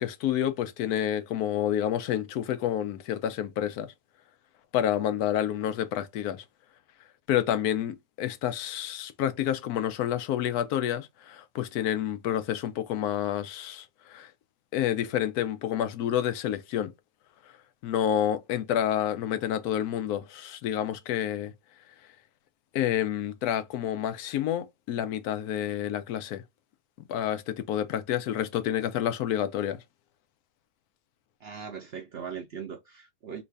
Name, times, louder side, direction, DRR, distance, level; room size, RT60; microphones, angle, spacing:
voice 1, 0.0-3.9 4.7-6.4 7.3-14.3 14.7-16.9 17.8-21.5 22.7-26.4 27.1-29.8, left 10 dB, 85° left, 1.1 m, -29 dB
voice 2, 31.4-33.4, right 7 dB, 65° right, 0.6 m, -39 dB
3.1 x 2.6 x 3.3 m
omnidirectional pair, 1.6 m